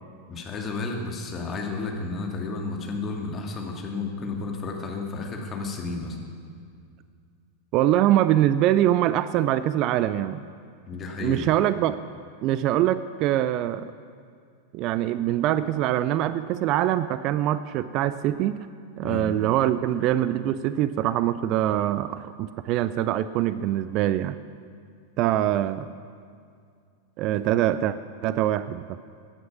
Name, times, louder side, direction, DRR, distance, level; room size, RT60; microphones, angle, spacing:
voice 1, 0.3-6.2 10.9-11.5 19.0-19.4, left 3 dB, 25° left, 1 dB, 2.3 m, -32 dB
voice 2, 7.7-10.4 11.2-12.0 12.4-13.9 14.7-18.6 19.0-24.4 25.2-25.9 27.2-28.0 28.2-29.0, right 12 dB, 40° right, 14 dB, 0.4 m, -23 dB
17.5 x 9.5 x 5.9 m, 2.2 s
figure-of-eight pair, 90°, 0 cm